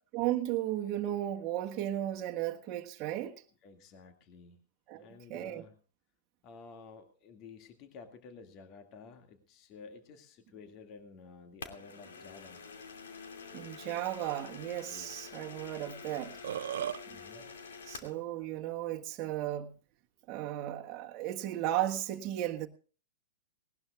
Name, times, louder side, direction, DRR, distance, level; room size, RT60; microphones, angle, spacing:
voice 1, 0.1-3.4 4.9-5.6 13.5-16.4 17.1-17.5 17.8-19.7 20.3-22.7, right 13 dB, 35° right, 1.5 m, -35 dB
voice 2, 3.6-4.6 4.9-5.7 6.4-12.6 13.1-13.2 14.9-15.3 15.6-16.2 17.1-17.5, left 5 dB, 40° left, 2.2 m, -52 dB
sound 1, 11.6-18.2, left 5 dB, 70° left, 2.6 m, -48 dB
Burping eructation, 16.2-17.0, right 10 dB, 65° right, 0.7 m, -35 dB
19.5 x 19.0 x 2.4 m
figure-of-eight pair, 105°, 0 cm